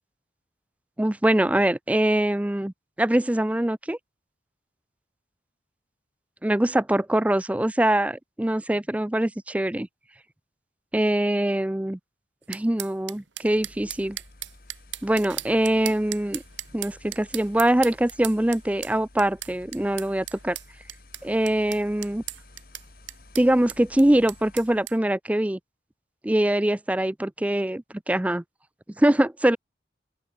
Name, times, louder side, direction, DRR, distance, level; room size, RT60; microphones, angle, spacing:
voice 1, 1.0-2.7 3.0-4.0 6.4-9.9 10.9-12.0 12.5-14.2 15.0-16.4 16.7-20.6 21.2-22.2 23.4-25.6 26.2-28.4 29.0-29.6, right 1 dB, 5° right, 0.4 m, -23 dB
sound 1, 12.5-25.0, right 14 dB, 85° right, 2.3 m, -38 dB
sound 2, 13.4-24.9, left 2 dB, 50° left, 2.0 m, -52 dB
open air
head